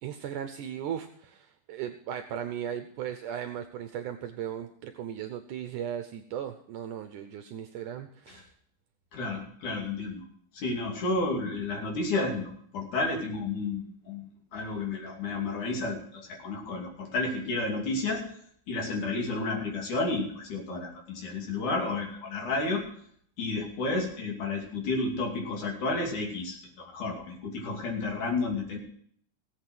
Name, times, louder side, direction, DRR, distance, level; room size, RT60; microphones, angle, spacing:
voice 1, 0.0-8.5, right 9 dB, 75° right, 8 dB, 2.1 m, -37 dB
voice 2, 9.1-10.2 10.5-14.2 14.5-18.3 18.7-22.8 23.4-28.8, left 3 dB, 60° left, 0 dB, 4.0 m, -31 dB
18.0 x 8.2 x 6.1 m, 0.63 s
omnidirectional pair, 4.0 m